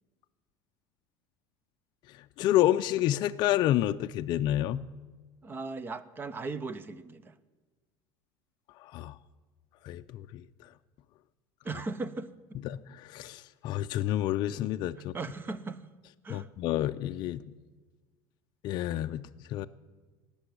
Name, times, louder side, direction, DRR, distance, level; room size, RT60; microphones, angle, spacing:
voice 1, 2.4-4.8 8.9-9.1 9.9-10.4 12.6-15.1 16.3-17.4 18.6-19.2 19.5-19.7, left 13 dB, 50° left, 8 dB, 0.4 m, -29 dB
voice 2, 5.4-7.3 11.6-12.3 15.0-15.8 16.2-16.5, right 3 dB, 20° right, 16 dB, 0.7 m, -37 dB
18.0 x 6.9 x 9.9 m, 1.3 s
supercardioid pair, 130°, 10 cm